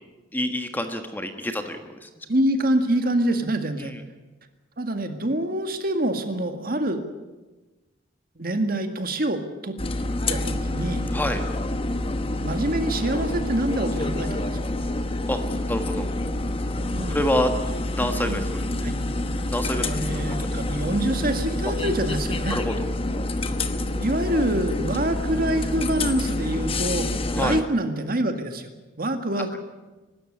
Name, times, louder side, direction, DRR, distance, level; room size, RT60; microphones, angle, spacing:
voice 1, 0.3-2.1 3.8-4.0 11.1-11.4 15.3-15.4 15.7-16.1 17.1-17.5 17.9-18.6 19.5-19.9 20.1-20.4 22.5-22.7 27.3-27.6, left 1 dB, 10° left, 6 dB, 1.4 m, -27 dB
voice 2, 2.3-3.9 4.8-7.0 8.4-9.8 10.3-11.0 12.4-14.5 16.9-17.2 18.2-18.5 18.8-19.0 19.8-22.6 23.9-27.1 27.4-28.7 29.0-29.6, right 1 dB, 50° right, 7 dB, 2.0 m, -26 dB
sound 1, 9.8-27.6, left 2 dB, 30° left, 1.1 m, -27 dB
24.0 x 13.0 x 9.9 m, 1.2 s
head